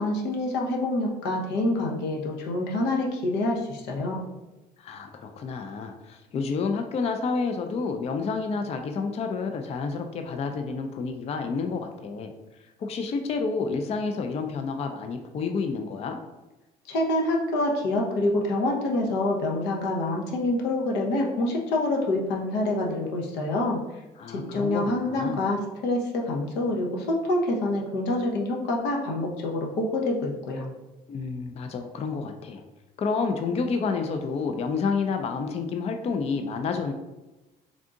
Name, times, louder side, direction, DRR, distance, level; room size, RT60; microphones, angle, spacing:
voice 1, 0.0-4.2 16.9-23.8 24.3-30.7, left 2 dB, 90° left, 0 dB, 0.8 m, -26 dB
voice 2, 4.8-12.3 12.8-16.2 24.2-25.4 31.1-32.6 33.0-36.9, left 4 dB, 40° left, 6 dB, 0.4 m, -29 dB
3.5 x 2.5 x 3.7 m, 1.1 s
cardioid pair, 110°, 17 cm